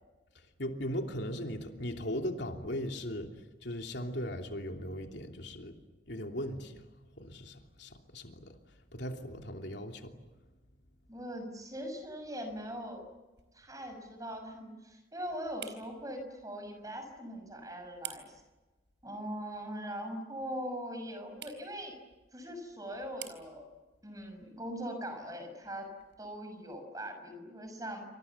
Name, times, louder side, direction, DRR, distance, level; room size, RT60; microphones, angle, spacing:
voice 1, 0.6-3.3 3.6-5.7 6.1-6.7 7.2-8.5 8.9-10.1, equal, 70° left, 3 dB, 3.0 m, -38 dB
voice 2, 11.1-13.1 13.5-18.4 19.0-22.0 22.3-23.6 24.0-25.9 26.2-28.1, equal, 20° right, 6 dB, 6.1 m, -41 dB
sound 1, 12.0-26.8, right 10 dB, 75° right, 4.3 m, -54 dB
28.5 x 26.5 x 7.3 m, 1.2 s
head